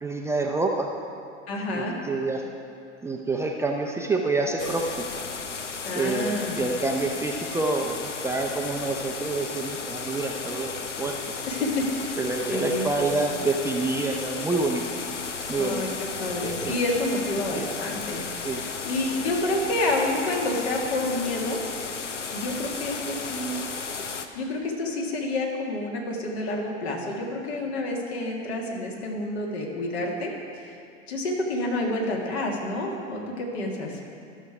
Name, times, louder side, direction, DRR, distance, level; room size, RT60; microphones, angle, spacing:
voice 1, 0.0-0.9 1.7-2.4 3.0-5.1 5.9-11.2 12.2-14.8 15.5-15.8 16.4-16.7 17.5-17.7 18.4-18.6, right 3 dB, 10° right, 0 dB, 0.5 m, -27 dB
voice 2, 1.5-1.9 5.8-6.6 11.4-12.2 12.5-12.9 15.6-21.6 22.3-23.6 24.3-30.3 30.6-30.8 31.1-34.0, left 2 dB, 65° left, -1 dB, 2.0 m, -29 dB
sound 1, 4.6-24.3, left 5 dB, 85° left, 0.6 m, -34 dB
13.0 x 6.3 x 4.8 m, 2.4 s
figure-of-eight pair, 85°, 35 cm